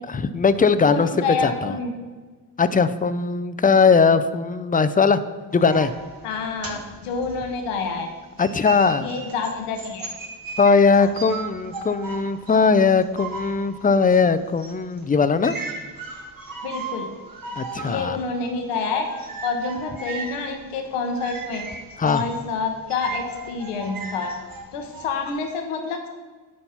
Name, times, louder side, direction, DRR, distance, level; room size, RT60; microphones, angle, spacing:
voice 1, 0.1-1.1 1.4-1.7 2.6-5.2 5.5-5.9 8.4-9.1 10.6-15.5 17.6-18.2 22.0-22.2, left 5 dB, 20° left, 13 dB, 0.4 m, -19 dB
voice 2, 0.9-1.9 6.2-8.1 9.0-10.1 10.9-11.1 16.6-17.1 17.8-19.1 19.4-21.6 22.0-24.3 24.7-26.1, left 4 dB, 90° left, 4 dB, 1.1 m, -28 dB
sound 1, 5.5-8.0 8.4-25.3, right 3 dB, 40° right, 1.6 m, -37 dB
9.8 x 4.2 x 5.7 m, 1.4 s
supercardioid pair, 60°, 50 cm